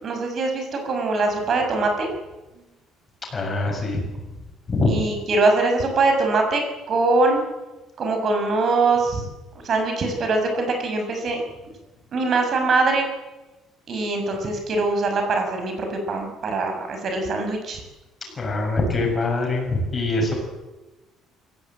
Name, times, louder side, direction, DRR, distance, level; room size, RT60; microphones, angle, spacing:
voice 1, 0.0-2.1 4.8-6.6 6.9-7.4 8.0-9.2 9.6-11.4 12.1-13.1 13.9-17.8, right 3 dB, 35° right, 4 dB, 5.9 m, -22 dB
voice 2, 3.3-4.0 4.7-5.0 18.4-20.3, left 2 dB, 20° left, 1 dB, 7.2 m, -23 dB
22.5 x 17.0 x 9.0 m, 1.1 s
cardioid pair, 160°, 0 cm